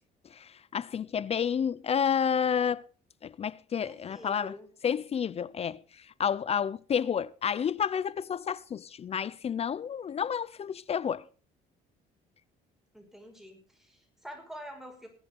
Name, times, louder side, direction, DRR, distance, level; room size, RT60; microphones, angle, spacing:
voice 1, 0.3-2.8 3.2-4.5 4.8-5.8 6.2-11.2, left 7 dB, 35° left, 0.6 m, -30 dB
voice 2, 3.8-4.7 12.9-15.1, equal, ahead, 5.6 m, -46 dB
20.5 x 8.3 x 5.5 m
cardioid pair, 110°, 17 cm